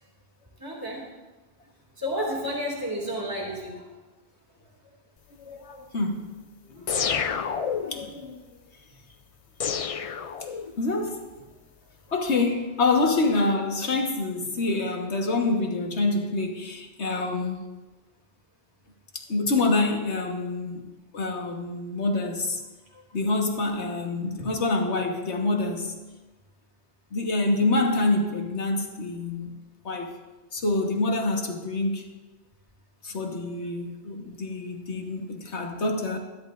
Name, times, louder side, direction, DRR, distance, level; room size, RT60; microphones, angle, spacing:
voice 1, 0.6-1.0 2.0-3.9, equal, 20° right, -2 dB, 2.4 m, -31 dB
voice 2, 5.4-6.3 6.7-6.9 7.8-8.4 10.8-11.2 12.1-17.6 19.1-20.8 21.1-22.6 23.1-25.9 27.1-29.5 29.8-30.1 30.5-32.1 33.0-36.2, left 2 dB, 80° left, 3 dB, 1.7 m, -26 dB
sound 1, 6.9-8.1 9.6-10.9, left 6 dB, 50° left, 0.4 m, -29 dB
21.0 x 11.0 x 2.5 m, 1.2 s
omnidirectional pair, 1.1 m